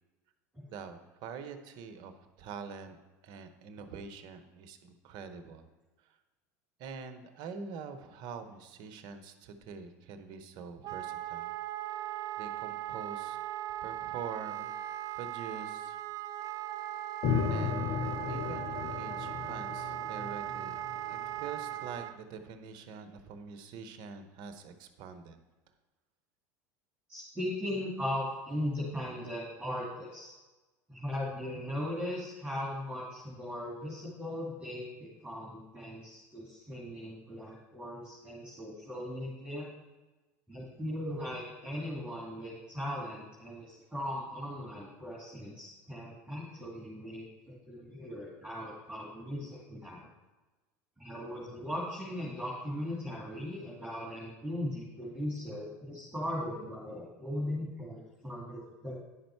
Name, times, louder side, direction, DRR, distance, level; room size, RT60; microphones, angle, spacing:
voice 1, 0.7-3.0 3.2-5.7 6.1-6.2 6.8-11.5 12.0-13.4 13.8-16.0 17.5-20.8 21.3-25.4, right 6 dB, 60° right, 9 dB, 0.9 m, -45 dB
Wind instrument woodwind instrument, 10.8-22.1, right 13 dB, 45° right, 0.4 m, -38 dB
sound 1, 17.2-21.9, left 6 dB, 60° left, 1.0 m, -35 dB
voice 2, 27.1-30.3 30.9-39.7 40.5-50.1 51.0-59.0, left 1 dB, 5° right, -5 dB, 2.3 m, -38 dB
10.0 x 5.3 x 4.6 m, 1.2 s
hypercardioid pair, 90°, 8 cm